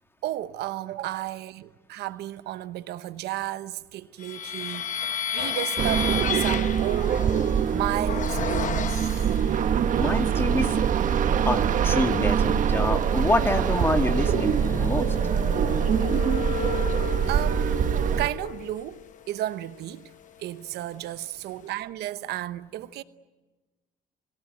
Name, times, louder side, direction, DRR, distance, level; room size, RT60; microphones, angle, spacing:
voice 1, 0.2-7.3 7.7-9.2 17.2-17.8 18.2-20.1 20.4-23.0, right 14 dB, 75° right, 0.9 m, -33 dB
sound 1, 4.2-9.7 10.2-11.1 11.5-20.7, left 9 dB, 50° left, 1.0 m, -34 dB
sound 2, 5.8-18.3, right 8 dB, 50° right, 1.2 m, -24 dB
voice 2, 9.9-10.8 11.5-15.7, left 2 dB, 15° left, 1.9 m, -27 dB
28.0 x 17.5 x 9.4 m
cardioid pair, 110°, 17 cm